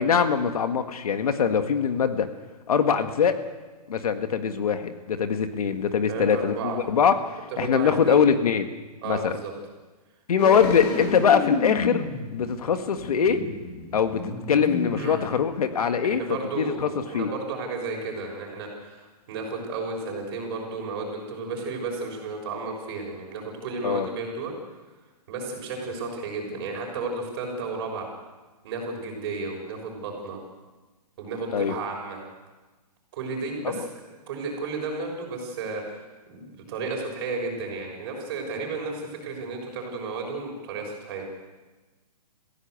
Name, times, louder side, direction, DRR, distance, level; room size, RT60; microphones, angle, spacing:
voice 1, 0.0-2.3 2.7-3.4 3.9-7.1 7.6-8.6 9.0-9.3 10.3-12.1 12.3-13.4 13.9-16.2 16.6-16.9 17.1-17.3 23.8-24.1 31.5-31.7 33.6-33.7, left 7 dB, 65° left, 8 dB, 1.8 m, -22 dB
voice 2, 6.1-6.8 7.5-8.2 9.0-9.5 14.9-15.2 16.0-24.5 25.3-28.1 28.6-30.4 31.2-32.2 33.1-36.0 36.3-41.4, right 3 dB, 35° right, 1 dB, 6.5 m, -33 dB
sound 1, 10.4-15.8 16.1-16.2, left 4 dB, 25° left, 2.9 m, -32 dB
23.5 x 16.0 x 8.3 m, 1.2 s
hypercardioid pair, 165°, 21 cm